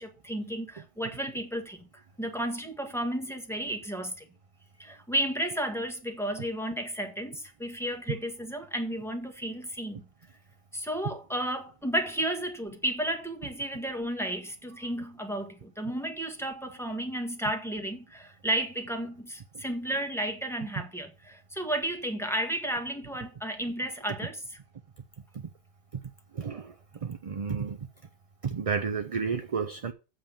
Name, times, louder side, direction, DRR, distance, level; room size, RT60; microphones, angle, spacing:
voice 1, 0.0-1.9 2.2-4.2 4.8-10.0 10.7-24.6, right 1 dB, ahead, 1.6 m, -33 dB
voice 2, 26.3-26.7 27.0-27.8 28.4-29.9, right 5 dB, 40° right, 0.5 m, -31 dB
7.8 x 5.2 x 7.0 m
omnidirectional pair, 1.2 m